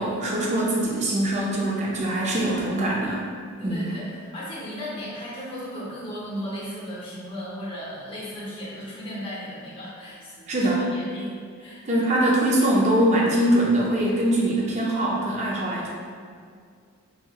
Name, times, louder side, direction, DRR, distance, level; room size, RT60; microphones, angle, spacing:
voice 1, 0.0-3.3 3.6-3.9 10.5-10.9 11.9-15.9, right 1 dB, 30° right, -3 dB, 0.4 m, -23 dB
voice 2, 3.6-11.3 11.6-11.8, equal, 25° left, -7 dB, 0.7 m, -36 dB
3.0 x 2.8 x 2.2 m, 2.2 s
head